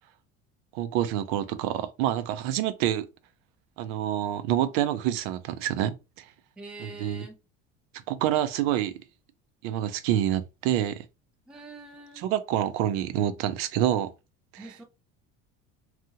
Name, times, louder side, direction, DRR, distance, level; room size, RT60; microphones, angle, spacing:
voice 1, 0.7-3.1 3.8-6.3 6.8-7.2 7.9-8.9 9.6-11.1 12.2-14.1 14.5-14.7, right 11 dB, 80° right, 0.6 m, -27 dB
voice 2, 6.6-7.4 11.5-12.3 14.6-14.8, right 3 dB, 5° right, 0.3 m, -44 dB
2.8 x 2.4 x 2.7 m
cardioid pair, 175°, 29 cm